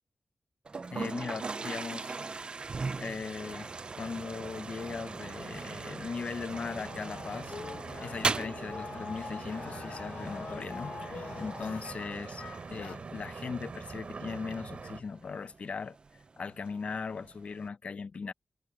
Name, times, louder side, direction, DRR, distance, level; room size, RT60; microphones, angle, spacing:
Toilet flush, 0.7-17.7, right 4 dB, 45° right, 0.6 m, -41 dB
voice 1, 0.9-2.3 3.0-7.6 8.0-16.0 16.4-18.3, left 5 dB, 65° left, 0.7 m, -39 dB
sound 1, 2.4-15.0, right 4 dB, 60° right, 4.2 m, -44 dB
sound 2, 6.5-13.0, left 5 dB, 85° left, 1.2 m, -44 dB
wide cardioid pair, 120°, 2 cm